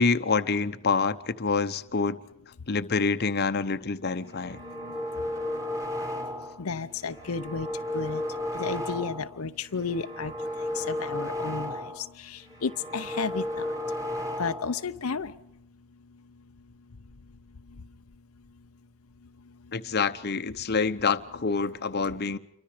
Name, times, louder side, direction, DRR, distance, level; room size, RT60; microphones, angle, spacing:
voice 1, 0.0-2.2 2.7-4.6 19.7-22.4, left 4 dB, 50° left, 10 dB, 0.9 m, -26 dB
sound 1, 4.3-6.6 7.0-9.4 9.7-12.1 12.4-14.8, left 1 dB, 15° right, 2.9 m, -34 dB
voice 2, 4.6-4.9 6.6-7.7 7.9-8.2 8.5-10.3 10.7-13.7 14.4-15.3, left 5 dB, 80° left, 9 dB, 0.8 m, -32 dB
28.0 x 24.0 x 5.1 m, 0.75 s
head